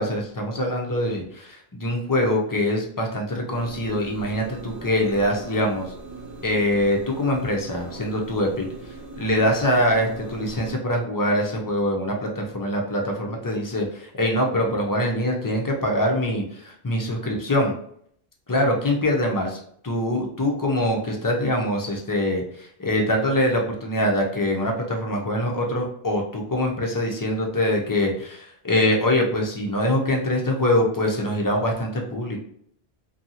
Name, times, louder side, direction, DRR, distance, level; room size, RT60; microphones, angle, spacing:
voice 1, 0.0-5.9 6.4-8.7 9.2-17.7 18.5-32.4, left 1 dB, 30° left, 0 dB, 0.4 m, -24 dB
sound 1, 3.5-10.7, right 3 dB, 15° right, 0.9 m, -40 dB
2.7 x 2.7 x 2.7 m, 0.65 s
omnidirectional pair, 1.0 m